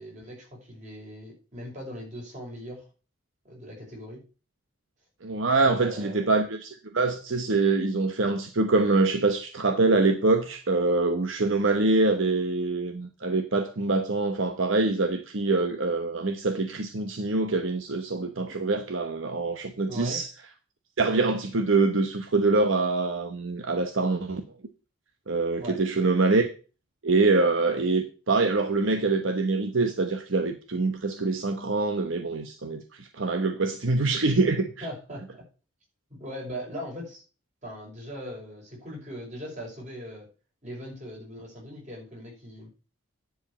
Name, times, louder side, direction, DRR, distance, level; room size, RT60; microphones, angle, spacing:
voice 1, 0.0-2.9 3.4-4.2 5.6-6.3 19.9-20.2 25.6-25.8 34.8-35.4 36.1-37.2 37.6-40.3 40.6-42.7, equal, 35° right, 5.5 m, -40 dB
voice 2, 5.2-20.3 21.0-24.4 25.3-26.5 27.0-34.9, right 3 dB, 70° right, 1.0 m, -25 dB
10.5 x 4.9 x 7.2 m
head